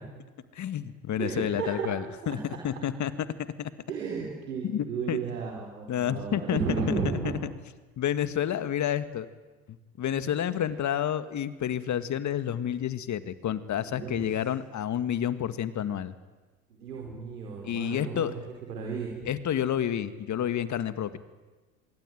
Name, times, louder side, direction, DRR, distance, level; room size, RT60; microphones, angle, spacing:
voice 1, 0.5-3.1 3.6-3.7 4.6-5.2 5.9-6.6 8.0-9.3 10.0-16.2 17.6-18.3 19.3-21.2, left 10 dB, 40° left, 12 dB, 1.9 m, -29 dB
voice 2, 1.2-2.6 3.9-7.5 10.2-10.3 13.9-14.2 16.8-18.3 18.7-19.3, right 5 dB, 85° right, -1 dB, 4.6 m, -34 dB
26.0 x 22.5 x 9.4 m, 1.2 s
hypercardioid pair, 80°, 46 cm